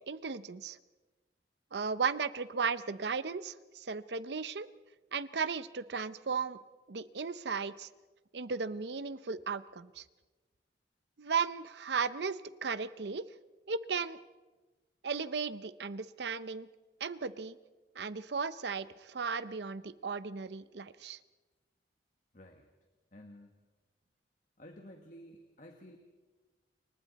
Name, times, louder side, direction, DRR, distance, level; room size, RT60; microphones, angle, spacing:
voice 1, 0.1-0.8 1.7-4.7 5.1-6.6 6.9-7.9 8.3-10.0 11.2-13.2 13.7-14.2 15.0-16.7 17.0-17.6 18.0-21.2, right 5 dB, 70° right, 15 dB, 0.7 m, -35 dB
voice 2, 22.3-22.7 23.1-23.5 24.6-26.0, equal, 45° left, 4 dB, 1.6 m, -52 dB
29.0 x 23.5 x 4.2 m, 1.2 s
head